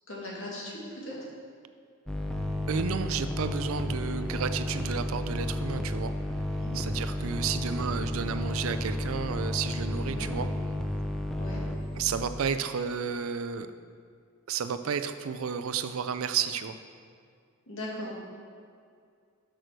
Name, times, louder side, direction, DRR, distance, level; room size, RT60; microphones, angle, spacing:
voice 1, 0.1-1.2 6.6-6.8 10.0-10.3 11.4-11.6 17.7-18.2, left 1 dB, 65° left, -4 dB, 2.2 m, -39 dB
sound 1, 2.1-12.4, left 1 dB, 5° left, 0.5 m, -32 dB
voice 2, 2.7-6.1 6.7-10.5 12.0-13.7 14.5-16.8, right 6 dB, 75° right, 11 dB, 0.4 m, -32 dB
6.5 x 6.4 x 6.1 m, 2.2 s
head